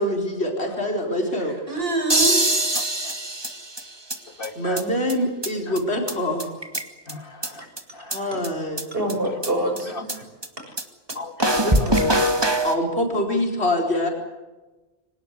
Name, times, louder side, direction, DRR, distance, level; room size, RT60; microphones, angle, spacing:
voice 1, 0.0-1.6 4.6-6.5 8.1-8.9 11.5-12.2 12.6-14.1, left 1 dB, 70° left, 2 dB, 4.8 m, -25 dB
voice 2, 1.7-2.4 7.6-7.7 8.9-9.9 10.6-10.7, right 2 dB, 60° right, 2 dB, 7.1 m, -25 dB
sound 1, 2.1-4.2 4.4-4.5 4.8-4.9 5.1-5.2 5.4-5.5 5.8-5.9 6.1-6.2 6.4-7.1 7.4-7.5 7.8-7.9 8.1-8.2 8.4-8.5 8.8-8.9 9.1-9.2 9.4-9.5 9.8-9.9 10.1-10.2 10.4-10.5 10.8-10.9 11.1-11.2 11.4-12.8, right 1 dB, 20° right, 2.1 m, -22 dB
voice 3, 2.7-3.1 4.3-4.9 5.7-5.8 7.1-7.7 7.9-8.4 9.2-9.3 9.9-10.2 11.1-11.9, left 3 dB, 55° left, 7 dB, 2.4 m, -37 dB
25.5 x 18.5 x 8.4 m, 1.2 s
omnidirectional pair, 1.1 m